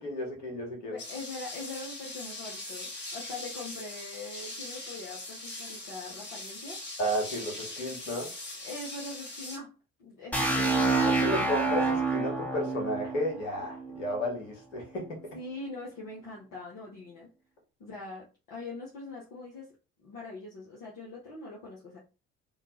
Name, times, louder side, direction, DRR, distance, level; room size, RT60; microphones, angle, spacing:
voice 1, 0.0-1.0 7.0-8.3 10.8-15.1, equal, 80° left, 1.2 m, -33 dB
voice 2, 0.9-6.8 8.6-9.7 10.0-11.5 15.3-17.3 17.8-19.7 20.0-22.0, left 3 dB, 55° left, 1.1 m, -42 dB
sound 1, 1.0-9.6, left 2 dB, 30° left, 1.3 m, -41 dB
sound 2, 10.3-14.2, right 3 dB, 5° left, 0.9 m, -28 dB
3.5 x 2.4 x 2.9 m
figure-of-eight pair, 50°, 37 cm